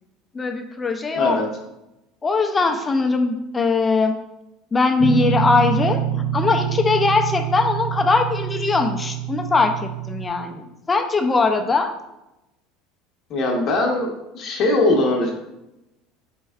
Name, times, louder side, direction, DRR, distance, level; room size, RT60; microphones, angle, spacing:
voice 1, 0.3-1.4 2.2-4.1 4.7-6.0 6.3-11.9, left 4 dB, 20° left, 5 dB, 0.4 m, -20 dB
voice 2, 1.1-1.5 13.3-15.3, left 2 dB, 45° left, 0 dB, 0.8 m, -21 dB
Guitar, 5.0-10.3, right 8 dB, 50° right, 0.5 m, -25 dB
4.4 x 4.2 x 2.4 m, 0.93 s
supercardioid pair, 110°, 0 cm